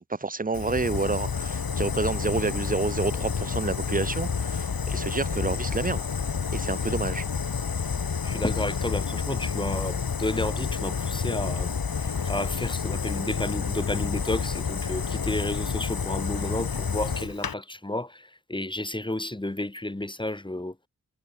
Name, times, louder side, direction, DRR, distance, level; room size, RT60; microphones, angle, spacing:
voice 1, 0.0-6.0 6.5-7.3, right 3 dB, 25° right, 0.7 m, -29 dB
Fire, 0.5-17.5, left 6 dB, 85° left, 1.6 m, -29 dB
voice 2, 8.2-11.7 12.0-20.8, left 1 dB, 15° left, 1.2 m, -31 dB
wide cardioid pair, 75°, 35 cm